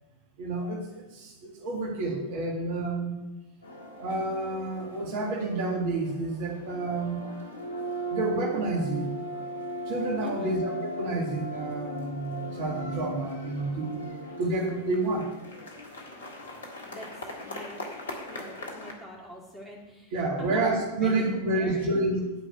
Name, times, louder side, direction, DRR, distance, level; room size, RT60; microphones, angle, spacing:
voice 1, 0.4-3.2 4.0-7.2 8.1-9.1 9.9-14.0 14.4-15.3 18.2-18.3 20.1-22.2, right 2 dB, 50° right, 1 dB, 1.7 m, -29 dB
sound 1, 3.6-18.9, equal, 70° left, 1.7 m, -38 dB
voice 2, 10.2-10.6 16.8-17.8 18.2-20.6 20.9-22.1, equal, 5° left, -4 dB, 3.3 m, -44 dB
10.0 x 4.9 x 7.8 m, 1.0 s
figure-of-eight pair, 90°, 0 cm